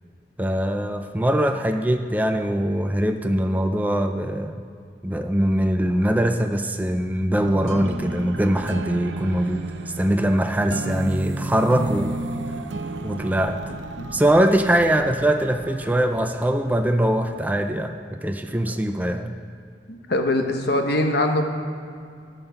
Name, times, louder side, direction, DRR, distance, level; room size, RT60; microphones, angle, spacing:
voice 1, 0.4-4.6 5.0-9.7 10.0-12.2 13.0-13.6 14.1-19.3, right 1 dB, 10° right, 6 dB, 0.4 m, -22 dB
sound 1, 7.3-17.6, right 2 dB, 85° right, 0.7 m, -33 dB
voice 2, 19.9-21.4, left 1 dB, 60° left, 5 dB, 1.0 m, -22 dB
13.0 x 5.6 x 5.7 m, 2.4 s
head